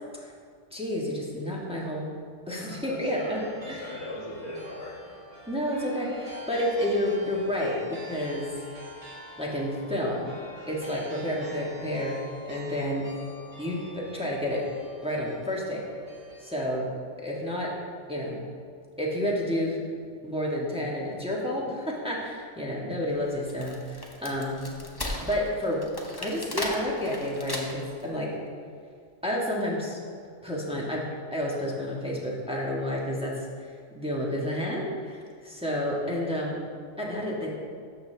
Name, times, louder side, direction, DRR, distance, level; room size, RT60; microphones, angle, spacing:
voice 1, 0.7-2.0 2.5-3.4 3.7-3.9 5.5-8.5 9.4-10.3 10.7-12.1 12.5-13.0 13.6-14.6 15.0-15.8 16.4-16.9 17.2-17.7 18.1-18.4 19.0-19.8 20.2-24.6 25.2-25.8 26.2-28.3 29.2-30.0 30.4-31.0 31.3-33.7 33.9-36.6 37.0-37.5, left 1 dB, 5° right, -4 dB, 1.4 m, -30 dB
voice 2, 2.5-5.2 23.0-23.3, left 1 dB, 90° left, -5 dB, 2.0 m, -40 dB
sound 1, 3.1-16.6, right 1 dB, 50° right, 1.8 m, -46 dB
Wood, 23.3-28.0, left 1 dB, 20° left, 0.8 m, -36 dB
13.0 x 6.9 x 3.4 m, 2.1 s
omnidirectional pair, 1.2 m